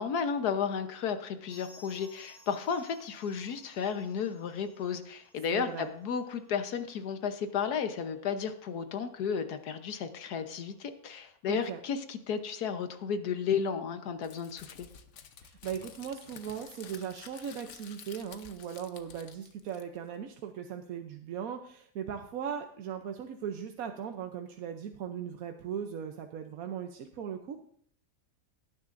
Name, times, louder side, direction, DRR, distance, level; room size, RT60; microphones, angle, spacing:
voice 1, 0.0-14.9, left 6 dB, 90° left, 8 dB, 1.5 m, -33 dB
sound 1, 1.5-12.0 12.3-12.4 12.6-12.7 13.4-13.5, left 1 dB, 35° left, 6.2 m, -61 dB
voice 2, 5.5-5.9 11.5-11.8 15.4-27.6, right 8 dB, 70° right, 5 dB, 1.1 m, -38 dB
Crumpling crinkling, 14.2-20.1, left 7 dB, 55° left, 1.1 m, -51 dB
18.0 x 10.0 x 2.6 m, 0.63 s
omnidirectional pair, 1.6 m